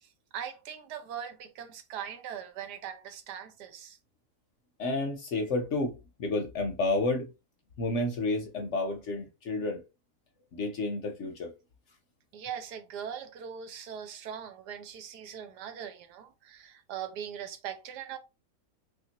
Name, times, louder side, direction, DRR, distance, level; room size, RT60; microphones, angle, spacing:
voice 1, 0.0-4.0 12.3-18.2, right 8 dB, 85° right, 1.3 m, -41 dB
voice 2, 4.8-7.3 7.8-9.8 10.5-11.5, left 2 dB, 60° left, 0.8 m, -30 dB
3.3 x 2.8 x 2.8 m
omnidirectional pair, 1.7 m